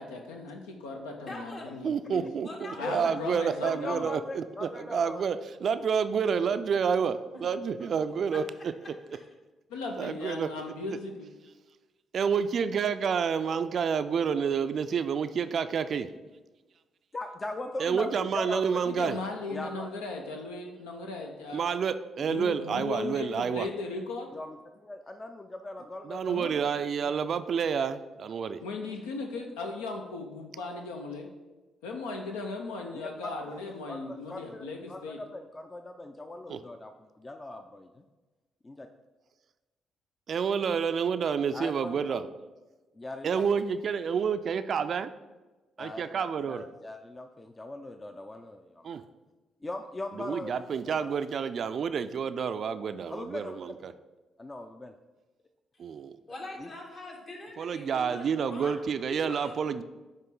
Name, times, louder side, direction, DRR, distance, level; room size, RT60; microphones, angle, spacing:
voice 1, 0.0-2.3 2.8-4.1 9.7-11.3 18.9-21.7 22.2-24.3 26.3-26.5 28.6-31.3 31.8-35.2, left 3 dB, 85° left, 2 dB, 0.6 m, -37 dB
voice 2, 1.2-1.7 2.4-3.1 7.3-7.5 7.8-7.9 8.8-8.9 56.3-58.8 59.1-59.6, left 1 dB, 55° left, -1 dB, 1.7 m, -43 dB
voice 3, 1.8-8.4 10.0-10.5 12.1-16.1 17.8-19.2 21.5-23.7 26.0-28.6 36.5-36.6 40.3-42.3 43.2-45.1 45.8-46.6 48.8-49.0 50.1-53.9 55.8-56.2 57.6-59.8, right 6 dB, 55° right, 11 dB, 0.3 m, -29 dB
voice 4, 2.8-3.1 3.6-5.3 13.4-13.7 17.1-18.8 19.5-19.9 24.3-26.6 32.9-38.0 38.6-38.9 41.5-42.2 43.0-43.4 45.8-48.9 49.6-51.2 53.1-53.9 54.4-54.9 56.6-56.7, left 2 dB, 30° left, 6 dB, 0.4 m, -40 dB
8.9 x 3.0 x 3.8 m, 1.2 s
hypercardioid pair, 45°, 0 cm